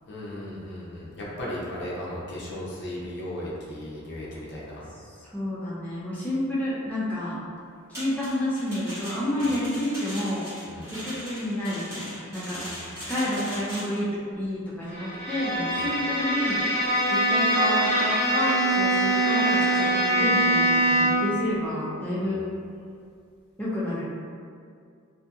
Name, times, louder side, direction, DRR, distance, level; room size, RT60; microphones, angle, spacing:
voice 1, 0.1-4.8 9.4-9.5 10.6-10.9 12.5-12.9 15.7-15.9 22.2-22.4, left 1 dB, 55° left, -6 dB, 0.6 m, -36 dB
voice 2, 5.1-7.4 7.9-10.5 10.8-12.6 13.1-14.1 14.4-22.4 23.6-24.0, left 1 dB, 10° left, -9 dB, 0.4 m, -30 dB
sound 1, 7.9-14.0, equal, 15° right, 1.2 m, -39 dB
Bowed string instrument, 14.9-21.3, right 1 dB, 45° right, 0.8 m, -23 dB
2.7 x 2.5 x 2.3 m, 2.3 s
head